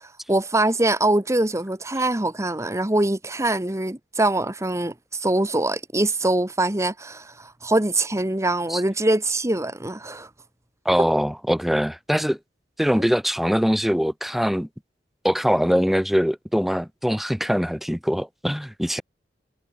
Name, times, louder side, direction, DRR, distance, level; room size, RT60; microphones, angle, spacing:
voice 1, 0.3-10.3 12.9-13.0, right 2 dB, 15° right, 1.5 m, -23 dB
voice 2, 10.8-12.4 12.8-14.7 15.2-19.0, equal, ahead, 1.3 m, -22 dB
head